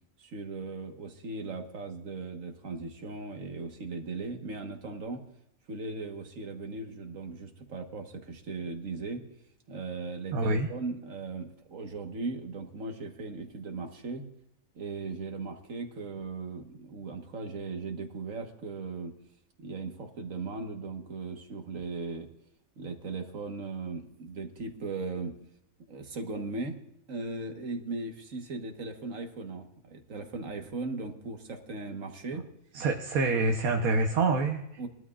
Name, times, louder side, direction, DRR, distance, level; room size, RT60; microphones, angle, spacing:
voice 1, 0.2-5.2 5.7-9.2 9.7-14.3 14.7-19.1 19.6-22.3 22.8-25.4 25.9-26.7 27.1-32.4 34.8-34.9, right 3 dB, 65° right, 4 dB, 1.7 m, -38 dB
voice 2, 10.3-10.7 32.7-34.9, right 3 dB, 85° right, 3 dB, 1.4 m, -26 dB
21.5 x 12.5 x 2.4 m, 0.79 s
omnidirectional pair, 1.5 m